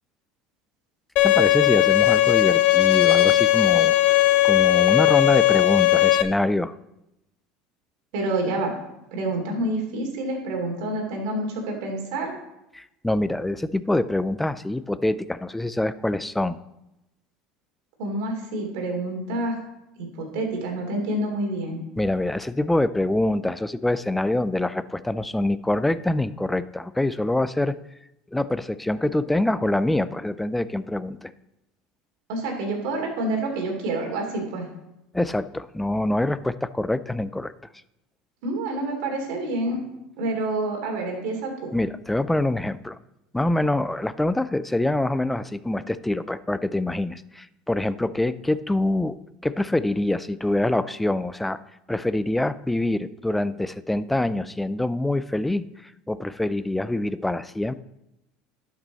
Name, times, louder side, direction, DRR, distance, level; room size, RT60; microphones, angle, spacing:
Bowed string instrument, 1.2-6.2, left 16 dB, 55° left, 0.7 m, -18 dB
voice 1, 1.2-4.0 4.4-6.8 12.7-16.6 22.0-27.7 28.3-31.3 35.1-37.5 41.7-43.0 43.3-49.2 49.4-51.6 51.9-57.7, left 1 dB, 5° left, 15 dB, 0.3 m, -25 dB
voice 2, 8.1-8.7 9.1-12.3 18.0-19.6 20.0-21.8 32.3-34.7 38.4-39.8 40.2-41.7, right 2 dB, 70° right, 2 dB, 2.9 m, -28 dB
12.0 x 6.1 x 4.1 m, 0.89 s
supercardioid pair, 140°, 2 cm